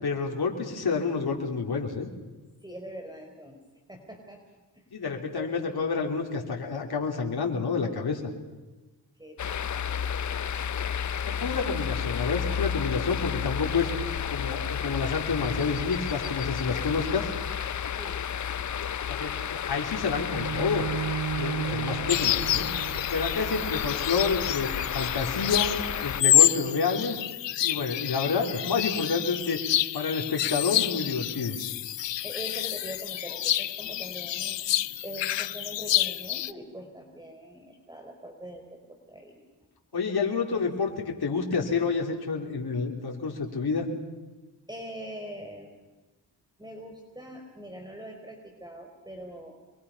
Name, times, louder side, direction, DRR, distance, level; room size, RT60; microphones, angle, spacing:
voice 1, 0.0-2.1 4.9-8.2 11.3-17.3 19.1-20.9 21.3-22.7 23.1-24.7 24.9-25.8 26.0-27.2 27.6-29.6 29.9-31.6 39.9-43.9, left 5 dB, 60° left, 1 dB, 3.8 m, -29 dB
voice 2, 2.6-3.6 3.9-4.4 4.7-4.8 5.3-5.5 9.2-10.1 17.9-18.2 21.7-22.3 32.2-34.6 35.0-39.4 39.9-40.1 40.3-40.7 44.7-45.8 46.6-49.5, equal, 10° right, 3 dB, 4.7 m, -43 dB
sound 1, 9.4-26.2, left 8 dB, 40° left, 0.6 m, -32 dB
Bowed string instrument, 20.2-25.4, right 9 dB, 65° right, 1.4 m, -36 dB
sound 2, 22.1-36.5, left 13 dB, 75° left, 0.8 m, -28 dB
27.0 x 22.0 x 5.7 m, 1.1 s
supercardioid pair, 50°, 44 cm